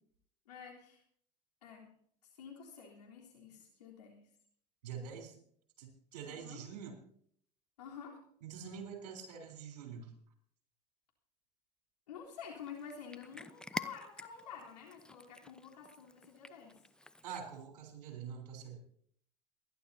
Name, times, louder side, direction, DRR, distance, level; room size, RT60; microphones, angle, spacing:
voice 1, 0.5-1.0 1.6-1.9 2.2-4.2 6.3-6.6 7.8-8.2 12.1-16.8, left 7 dB, 85° left, -2 dB, 3.6 m, -49 dB
voice 2, 4.8-5.4 5.8-6.9 8.4-10.1 17.2-18.8, right 7 dB, 80° right, 3 dB, 3.7 m, -46 dB
Cat, 12.4-17.6, left 1 dB, 5° left, 0.7 m, -48 dB
27.5 x 11.5 x 2.8 m, 0.63 s
hypercardioid pair, 75°, 20 cm